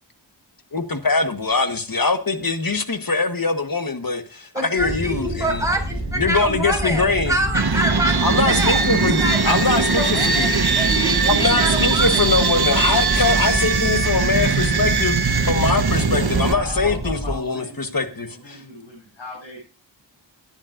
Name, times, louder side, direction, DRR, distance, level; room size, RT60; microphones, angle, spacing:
voice 1, 0.7-5.7 6.1-7.4 8.2-10.5 11.2-18.6, left 3 dB, 50° left, 1.3 m, -22 dB
voice 2, 4.5-9.5 10.0-12.1, right 1 dB, 5° right, 5.5 m, -26 dB
sound 1, 4.8-17.3, right 1 dB, 40° right, 7.0 m, -28 dB
sound 2, 7.5-16.5, right 4 dB, 55° right, 1.1 m, -20 dB
voice 3, 16.4-19.6, left 1 dB, 85° left, 7.9 m, -38 dB
19.0 x 10.5 x 2.6 m
wide cardioid pair, 65°, 45 cm